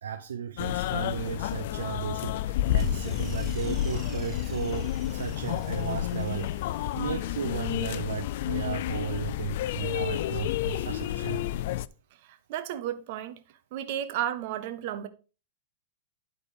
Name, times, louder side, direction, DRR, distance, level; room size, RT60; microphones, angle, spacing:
voice 1, 0.0-6.7 6.9-11.4, right 8 dB, 85° right, 0.9 m, -35 dB
sound 1, 0.6-11.9, left 13 dB, 60° left, 0.4 m, -30 dB
sound 2, 2.8-7.1, right 6 dB, 30° right, 1.1 m, -44 dB
voice 2, 12.5-13.4 13.7-15.1, right 11 dB, 55° right, 1.2 m, -32 dB
11.0 x 4.2 x 5.0 m
hypercardioid pair, 120°, 0 cm